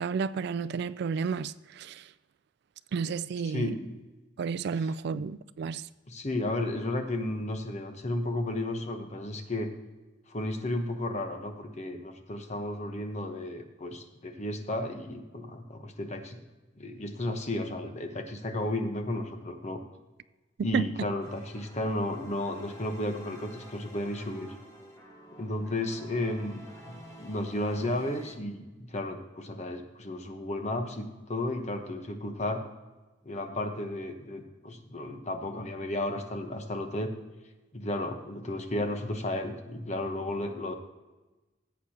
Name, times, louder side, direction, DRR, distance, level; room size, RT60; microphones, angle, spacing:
voice 1, 0.0-2.1 2.9-3.7 4.4-5.9 20.6-20.9, right 5 dB, 60° right, 0.3 m, -31 dB
voice 2, 3.4-3.9 5.1-5.2 6.1-9.7 10.3-16.4 16.8-19.8 20.6-24.5 25.4-32.6 33.2-37.1 37.7-40.7, left 1 dB, 35° left, 1.0 m, -33 dB
sound 1, 21.2-28.4, equal, 15° left, 1.3 m, -50 dB
16.0 x 8.2 x 2.9 m
head